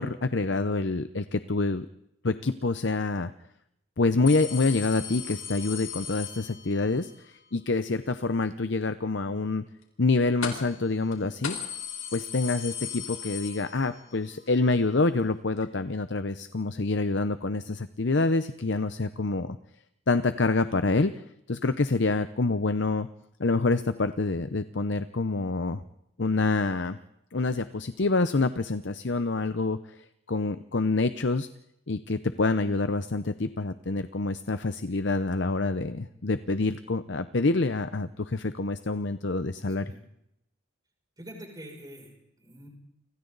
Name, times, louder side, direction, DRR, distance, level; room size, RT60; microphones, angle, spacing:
voice 1, 0.0-1.9 2.2-3.3 4.0-7.1 7.5-9.6 10.0-11.6 12.1-19.6 20.1-21.2 21.5-23.1 23.4-25.8 26.2-27.0 27.3-31.5 31.9-39.9, left 3 dB, 55° left, 11 dB, 0.8 m, -27 dB
sound 1, 4.3-7.0 10.4-10.8 11.1-11.2 11.4-14.2 14.5-14.6 15.6-15.7, left 8 dB, 85° left, 4.9 m, -37 dB
voice 2, 41.2-42.7, equal, 20° right, 0 dB, 6.6 m, -45 dB
30.0 x 25.5 x 4.1 m, 0.81 s
head